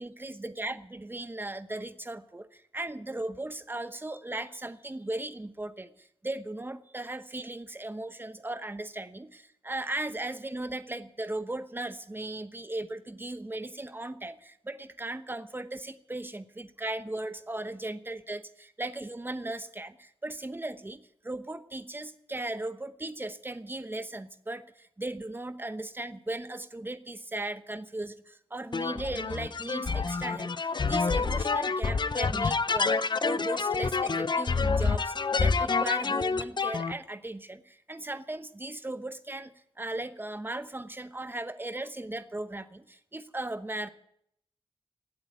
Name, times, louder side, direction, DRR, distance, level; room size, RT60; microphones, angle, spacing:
voice 1, 0.0-43.9, right 2 dB, 20° right, 11 dB, 1.0 m, -37 dB
sound 1, 28.7-36.9, left 4 dB, 50° left, 0.7 m, -28 dB
18.0 x 8.0 x 9.6 m, 0.75 s
wide cardioid pair, 95°, 10 cm